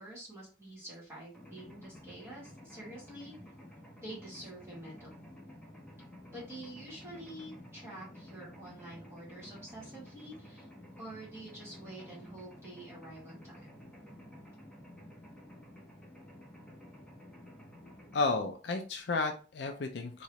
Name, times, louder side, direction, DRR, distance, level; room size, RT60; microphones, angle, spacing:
voice 1, 0.0-3.3 4.0-5.2 6.3-10.7 11.0-13.8, right 1 dB, 15° right, -7 dB, 1.8 m, -47 dB
Mechanisms, 1.3-18.2, left 1 dB, 5° left, 1.0 m, -52 dB
voice 2, 18.1-20.2, left 3 dB, 60° left, 5 dB, 0.4 m, -32 dB
3.7 x 3.1 x 2.9 m, 0.37 s
head